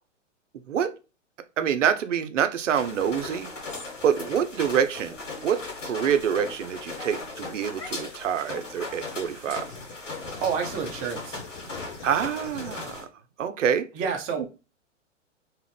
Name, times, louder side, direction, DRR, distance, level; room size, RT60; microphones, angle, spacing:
voice 1, 1.6-3.5 4.0-5.2 5.4-9.7 12.0-13.1 13.4-13.9, right 8 dB, 75° right, 0.5 m, -26 dB
sound 1, 2.7-13.0, left 3 dB, 75° left, 1.6 m, -38 dB
Dog, 5.5-5.7 6.5-6.6 6.9-8.1 8.4-8.5 8.9-10.4 10.6-10.8 11.1-11.2 11.5-11.6 12.0-12.1 12.5-12.6 12.8-12.9, left 3 dB, 15° left, 1.4 m, -47 dB
sound 2, 6.2-7.9 8.3-13.0, left 5 dB, 35° left, 0.9 m, -44 dB
voice 2, 10.4-11.4 13.9-14.5, right 6 dB, 20° right, 0.5 m, -29 dB
2.8 x 2.4 x 3.2 m
figure-of-eight pair, 110°, 38 cm